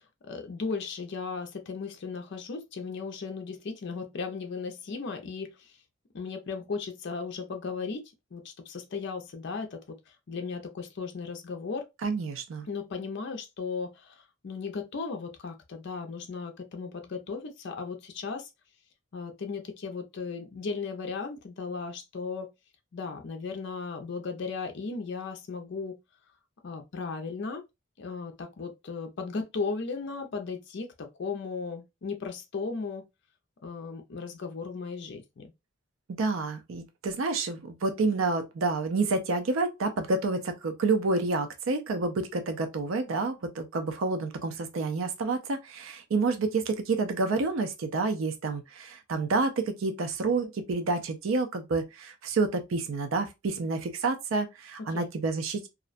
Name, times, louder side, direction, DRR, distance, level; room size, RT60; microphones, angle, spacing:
voice 1, 0.0-5.8 6.1-11.9 12.6-18.5 19.1-22.5 22.9-26.0 26.6-27.6 28.0-33.0 33.6-35.5 54.9-55.1, left 4 dB, 55° left, 0.4 m, -36 dB
voice 2, 12.0-12.7 36.2-55.7, right 3 dB, 75° right, 0.5 m, -29 dB
2.4 x 2.1 x 2.4 m
head